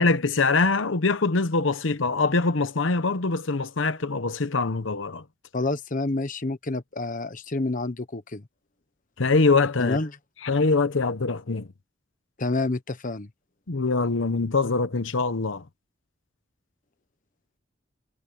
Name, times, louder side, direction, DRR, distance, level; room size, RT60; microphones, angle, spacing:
voice 1, 0.0-5.2 9.2-10.0 10.4-11.7 13.7-15.6, left 3 dB, 85° left, 0.9 m, -23 dB
voice 2, 5.5-8.4 9.8-10.1 12.4-13.3, left 2 dB, 45° left, 1.1 m, -28 dB
head